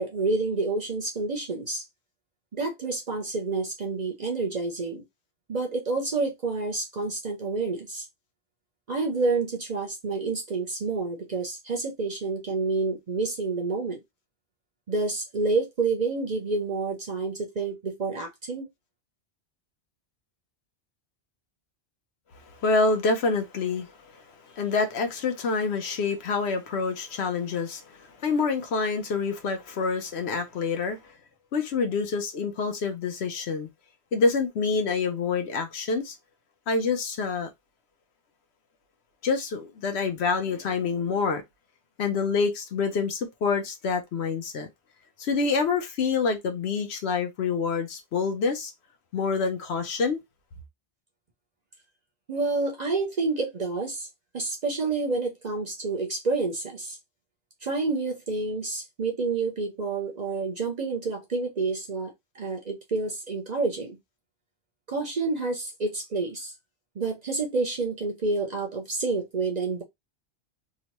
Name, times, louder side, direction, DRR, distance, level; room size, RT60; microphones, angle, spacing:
voice 1, 0.0-1.8 2.5-5.0 5.5-8.0 8.9-14.0 14.9-18.7 52.3-54.1 54.3-57.0 57.6-64.0 64.9-66.5 67.0-69.8, right 3 dB, 50° right, 0.6 m, -29 dB
voice 2, 22.6-24.1 24.5-31.0 31.5-33.7 34.1-36.1 36.7-37.5 39.2-41.4 42.0-44.7 45.2-48.7 49.1-50.2, left 4 dB, 70° left, 1.0 m, -27 dB
3.0 x 2.2 x 2.9 m
omnidirectional pair, 1.1 m